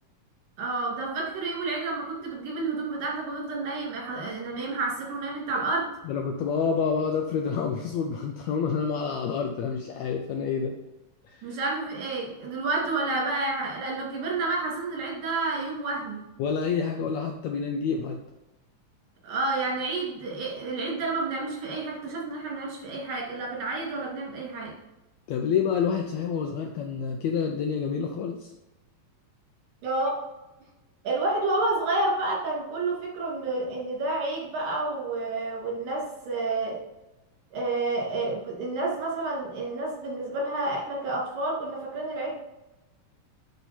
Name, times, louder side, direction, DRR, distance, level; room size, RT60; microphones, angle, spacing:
voice 1, 0.6-5.9 11.4-16.2 19.2-24.7 29.8-30.2 31.0-36.8 37.5-42.4, right 2 dB, 70° right, -3 dB, 4.0 m, -30 dB
voice 2, 6.0-10.7 11.2-11.5 16.4-18.2 25.3-28.5, left 6 dB, 80° left, 3 dB, 1.6 m, -28 dB
9.9 x 4.6 x 4.3 m, 0.99 s
omnidirectional pair, 3.8 m